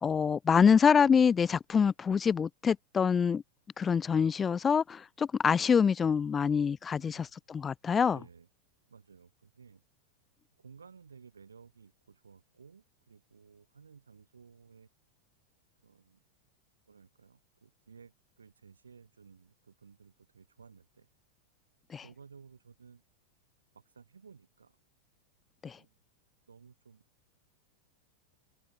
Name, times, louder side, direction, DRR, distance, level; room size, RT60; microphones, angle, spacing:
voice 1, 0.0-3.4 3.8-8.2 21.9-22.0 25.6-25.8, left 6 dB, 20° left, 0.4 m, -25 dB
voice 2, 6.9-7.4 8.0-8.5 8.9-9.8 10.6-14.9 15.8-16.2 16.9-21.1 22.0-23.0 23.7-24.8 25.6-26.0 26.5-27.0, right 5 dB, 75° right, 4.5 m, -56 dB
open air
figure-of-eight pair, 90°, 0 cm